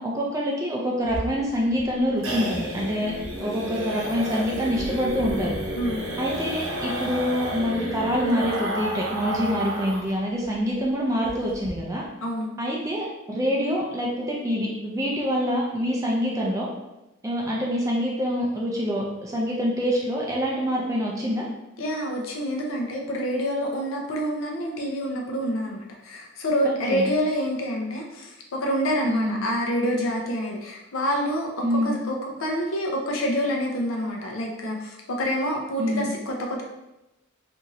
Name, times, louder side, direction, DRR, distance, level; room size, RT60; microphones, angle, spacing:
voice 1, 0.0-3.1 3.4-5.6 6.2-12.0 12.6-16.7 17.2-21.4 26.6-27.1 29.1-29.4 31.6-32.0 35.8-36.1, equal, 15° right, -3 dB, 0.3 m, -26 dB
sound 1, 1.0-10.1 10.4-10.5 10.8-10.9 11.2-11.7, right 1 dB, 90° right, 0.6 m, -31 dB
voice 2, 21.8-36.6, equal, 85° left, 0 dB, 0.6 m, -27 dB
2.9 x 2.6 x 2.5 m, 0.96 s
head